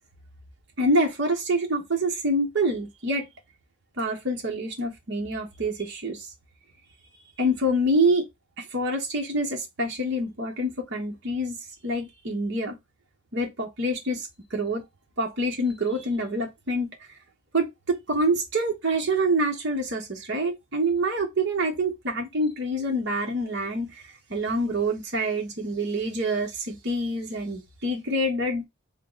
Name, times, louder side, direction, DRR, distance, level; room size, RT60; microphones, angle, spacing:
voice 1, 0.8-3.3 4.0-6.3 7.4-8.3 8.6-11.6 11.8-12.8 13.3-14.8 15.2-16.9 17.5-24.0 24.3-28.6, right 1 dB, 55° right, 0.9 m, -26 dB
3.6 x 2.0 x 3.7 m
head